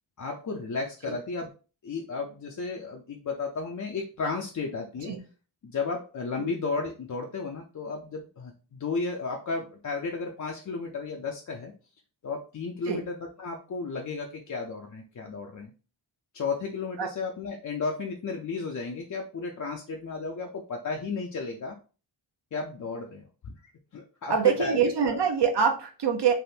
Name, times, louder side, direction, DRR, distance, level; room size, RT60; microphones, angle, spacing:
voice 1, 0.2-1.5 1.8-5.1 5.6-11.7 12.2-15.7 16.3-21.7 22.5-23.5 23.9-24.8, left 4 dB, 40° left, 1 dB, 0.4 m, -33 dB
voice 2, 24.3-26.3, right 7 dB, 55° right, 4 dB, 0.6 m, -25 dB
3.4 x 2.4 x 2.7 m, 0.35 s
wide cardioid pair, 110°, 50 cm